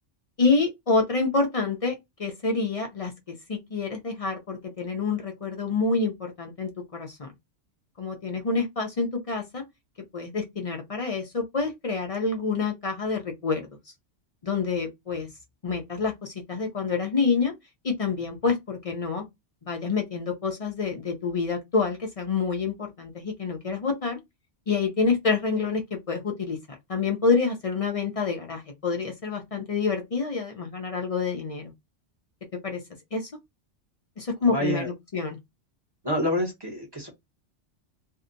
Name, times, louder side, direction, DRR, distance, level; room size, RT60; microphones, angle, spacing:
voice 1, 0.4-1.9 2.2-7.3 8.0-9.6 10.1-13.6 14.4-15.3 15.6-17.5 17.8-19.2 19.7-24.2 24.7-26.6 26.9-31.7 32.6-32.8 33.1-33.3 34.2-35.4, left 4 dB, 45° left, 0.5 m, -27 dB
voice 2, 34.5-34.9 36.0-37.1, equal, 25° right, 0.8 m, -27 dB
2.7 x 2.1 x 2.5 m
omnidirectional pair, 1.2 m